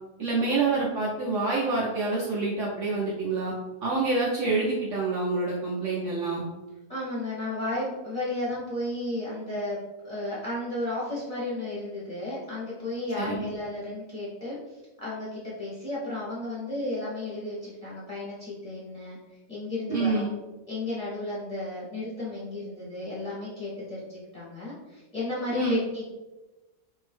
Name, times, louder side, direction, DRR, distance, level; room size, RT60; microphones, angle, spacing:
voice 1, 0.2-3.5 3.8-6.4 13.2-13.5 19.9-20.3 25.5-25.8, right 3 dB, 65° right, -5 dB, 0.8 m, -27 dB
voice 2, 6.9-9.8 10.0-19.2 19.5-20.3 20.7-26.0, left 2 dB, 25° left, -8 dB, 0.9 m, -33 dB
2.7 x 2.6 x 3.4 m, 1.1 s
omnidirectional pair, 1.7 m